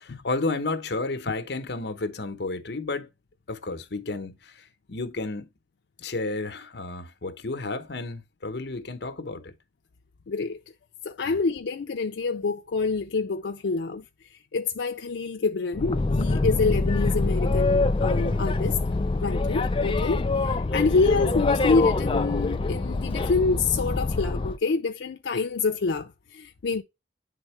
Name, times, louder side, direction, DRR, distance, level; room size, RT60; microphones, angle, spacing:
voice 1, 0.0-3.1 3.5-5.5 6.0-9.5 11.3-11.4 20.7-20.8, left 3 dB, 65° left, 0.9 m, -32 dB
voice 2, 10.3-10.6 11.0-14.0 14.5-18.8 19.2-26.8, left 4 dB, 85° left, 0.5 m, -27 dB
Boat Water vehicle, 15.7-24.6, left 3 dB, 30° left, 0.4 m, -25 dB
9.2 x 3.6 x 3.2 m
head